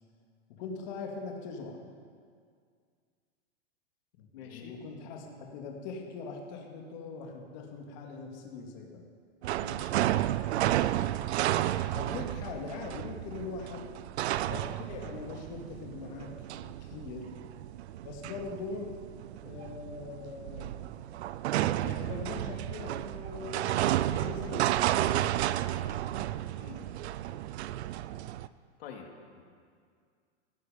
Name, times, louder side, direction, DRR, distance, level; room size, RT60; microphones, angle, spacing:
voice 1, 0.5-1.8 4.2-9.1 11.9-13.9 14.5-16.3 16.6-17.4 18.0-19.0 19.4-21.2 21.7-25.4, left 4 dB, 40° left, 2 dB, 2.2 m, -42 dB
voice 2, 4.3-4.8 9.6-10.0 26.6-26.8 28.8-29.1, left 7 dB, 60° left, 2 dB, 2.6 m, -46 dB
sound 1, 9.4-28.5, right 13 dB, 70° right, 0.6 m, -32 dB
16.5 x 14.5 x 5.2 m, 2.1 s
supercardioid pair, 170°, 34 cm